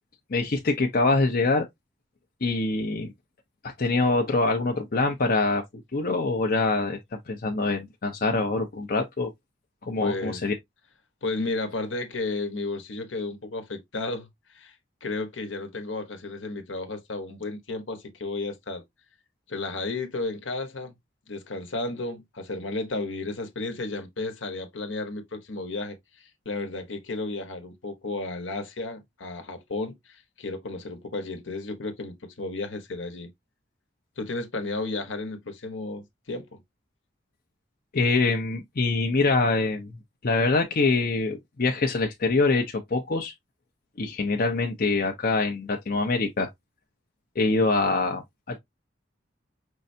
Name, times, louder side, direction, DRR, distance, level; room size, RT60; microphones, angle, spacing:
voice 1, 0.3-1.7 2.4-3.1 3.6-5.6 5.9-7.0 7.3-9.3 9.8-10.6 37.9-39.9 40.2-43.3 44.0-46.5 47.4-48.2 48.5-48.6, left 3 dB, 50° left, 0.7 m, -24 dB
voice 2, 10.0-10.5 11.2-14.7 15.0-18.8 19.5-20.9 21.3-33.3 34.2-36.6, left 2 dB, 75° left, 1.1 m, -33 dB
5.4 x 3.3 x 2.7 m
head